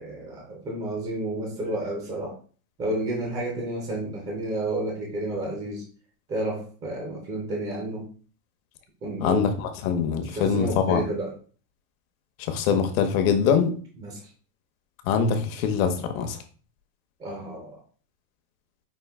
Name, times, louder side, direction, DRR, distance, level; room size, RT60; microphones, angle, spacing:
voice 1, 0.0-2.4 2.8-5.8 6.3-8.1 9.0-9.5 10.3-11.4 14.0-14.2 17.2-17.8, right 1 dB, 15° right, -1 dB, 0.5 m, -31 dB
voice 2, 9.2-11.0 12.4-13.7 15.0-16.4, left 6 dB, 55° left, 7 dB, 0.9 m, -23 dB
5.5 x 2.5 x 3.5 m, 0.41 s
supercardioid pair, 170°, 50 cm